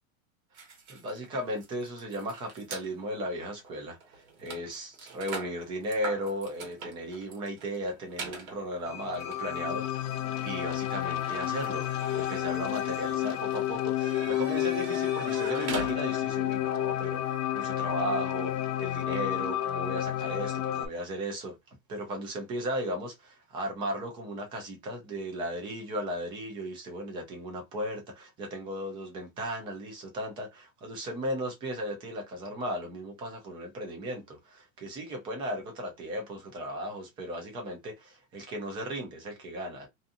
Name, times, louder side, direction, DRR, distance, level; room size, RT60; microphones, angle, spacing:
sound 1, 0.5-2.9 3.6-3.7 4.0-16.5, right 4 dB, 90° right, 1.2 m, -43 dB
voice 1, 0.9-21.6 21.9-39.9, equal, 15° right, 0.3 m, -36 dB
sound 2, 8.9-20.9, left 12 dB, 50° left, 0.6 m, -30 dB
2.6 x 2.5 x 2.4 m
supercardioid pair, 165°, 40 cm